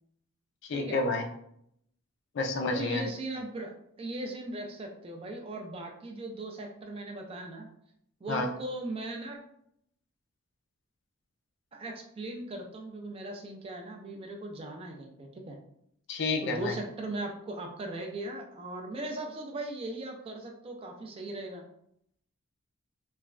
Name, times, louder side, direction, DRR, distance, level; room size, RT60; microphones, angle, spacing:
voice 1, 0.6-1.3 2.3-3.1 8.3-8.5 16.1-16.8, left 3 dB, 55° left, 4 dB, 0.4 m, -30 dB
voice 2, 2.7-3.7 4.0-7.7 8.2-9.4 11.7-15.6 16.4-21.6, right 2 dB, 25° right, 2 dB, 0.3 m, -38 dB
3.1 x 2.1 x 2.4 m, 0.73 s
head